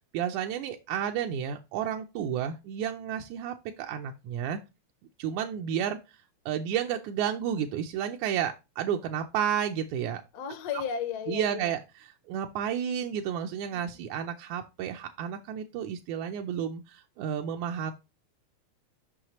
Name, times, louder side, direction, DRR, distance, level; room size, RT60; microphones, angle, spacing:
voice 1, 0.1-4.6 5.2-6.0 6.5-10.2 11.3-11.8 12.3-17.9, right 9 dB, 85° right, 2.1 m, -31 dB
voice 2, 10.3-11.8 13.7-13.8, left 7 dB, 70° left, 1.7 m, -34 dB
6.3 x 5.7 x 2.9 m
omnidirectional pair, 3.3 m